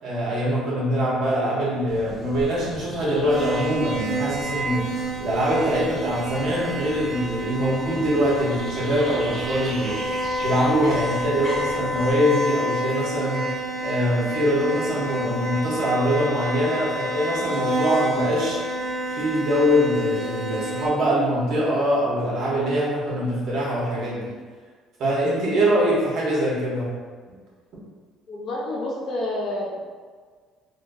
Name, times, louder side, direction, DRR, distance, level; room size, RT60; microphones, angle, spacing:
voice 1, 0.0-4.8 5.2-10.0 10.4-13.5 13.8-18.6 19.1-24.3 25.0-26.9, equal, 50° right, -6 dB, 1.2 m, -23 dB
sound 1, 1.9-12.1, equal, 15° left, 1.3 m, -39 dB
sound 2, 3.3-20.9, right 1 dB, 35° right, 1.4 m, -29 dB
voice 2, 28.3-29.8, left 1 dB, 45° left, -4 dB, 0.8 m, -29 dB
3.7 x 2.4 x 2.7 m, 1.5 s
cardioid pair, 150°, 0 cm